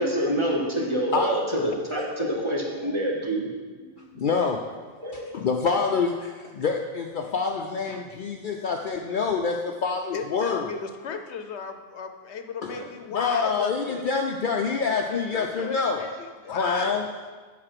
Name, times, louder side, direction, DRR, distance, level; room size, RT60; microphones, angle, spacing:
voice 1, 0.0-4.2 5.0-5.2 12.7-12.8, equal, 25° right, -3 dB, 1.4 m, -27 dB
voice 2, 4.2-4.6 5.1-10.7 12.6-12.8 13.1-16.0 16.5-17.1, left 5 dB, 55° left, 3 dB, 0.7 m, -26 dB
voice 3, 7.8-8.3 10.1-14.0 15.1-17.1, left 6 dB, 85° left, 7 dB, 1.0 m, -36 dB
7.8 x 5.8 x 5.8 m, 1.5 s
omnidirectional pair, 1.1 m